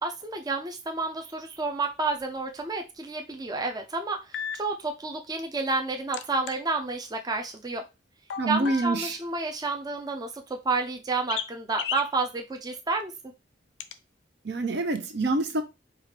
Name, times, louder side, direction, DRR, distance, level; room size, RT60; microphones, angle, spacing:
voice 1, 0.0-7.8 8.5-13.1, right 3 dB, 20° right, 0.5 m, -30 dB
sound 1, 2.2-2.3 4.3-4.6 6.1-6.5 8.3-9.1 11.3-11.5 11.8-12.1 13.8-13.9, left 8 dB, 75° left, 0.4 m, -34 dB
voice 2, 8.4-9.2 14.4-15.6, right 2 dB, 65° right, 0.7 m, -26 dB
4.7 x 2.4 x 3.3 m
head